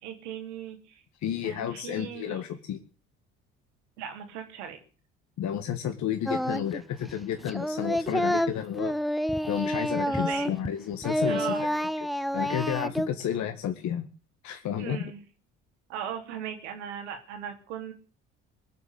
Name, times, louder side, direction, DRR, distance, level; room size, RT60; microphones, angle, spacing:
voice 1, 0.0-1.0 1.4-2.4 4.0-4.8 10.1-10.5 11.2-11.7 14.8-15.2 15.9-17.9, right 8 dB, 75° right, 5 dB, 3.3 m, -38 dB
voice 2, 1.2-2.8 5.4-9.0 9.5-11.7 12.3-14.1 14.4-15.1, left 9 dB, 50° left, 6 dB, 1.8 m, -31 dB
Singing, 6.3-6.8 7.1-10.7 11.0-13.1, equal, ahead, 0.8 m, -29 dB
22.0 x 7.6 x 8.0 m, 0.39 s
figure-of-eight pair, 55°, 35 cm